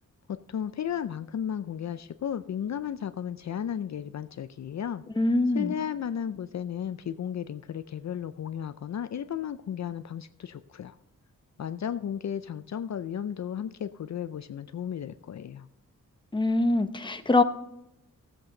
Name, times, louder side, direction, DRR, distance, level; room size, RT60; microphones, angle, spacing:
voice 1, 0.3-5.0 5.5-10.9 11.6-15.7, left 9 dB, 60° left, 11 dB, 0.5 m, -34 dB
voice 2, 5.2-5.7 16.3-17.4, left 2 dB, 15° left, 8 dB, 0.7 m, -23 dB
15.5 x 7.7 x 3.9 m, 0.84 s
wide cardioid pair, 110°, 32 cm